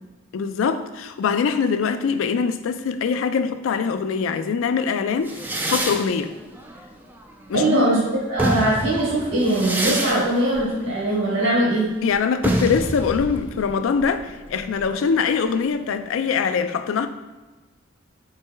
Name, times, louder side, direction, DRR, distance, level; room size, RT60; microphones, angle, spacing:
voice 1, 0.3-5.3 5.7-6.3 7.5-7.9 12.0-17.1, left 6 dB, 80° left, 0.3 m, -23 dB
sound 1, 5.2-7.7 8.2-15.7, right 1 dB, 10° right, 0.3 m, -29 dB
voice 2, 7.5-11.9, right 1 dB, 75° right, 1.2 m, -21 dB
4.6 x 4.5 x 2.2 m
head